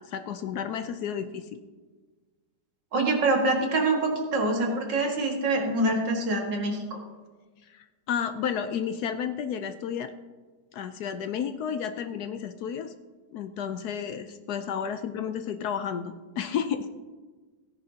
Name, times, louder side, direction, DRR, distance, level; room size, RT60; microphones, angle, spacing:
voice 1, 0.0-1.6 7.7-10.1 10.7-12.9 13.3-17.0, left 8 dB, 70° left, 9 dB, 1.1 m, -32 dB
voice 2, 2.9-7.0, right 2 dB, 90° right, 1 dB, 2.4 m, -25 dB
17.0 x 9.7 x 2.8 m, 1.4 s
omnidirectional pair, 1.9 m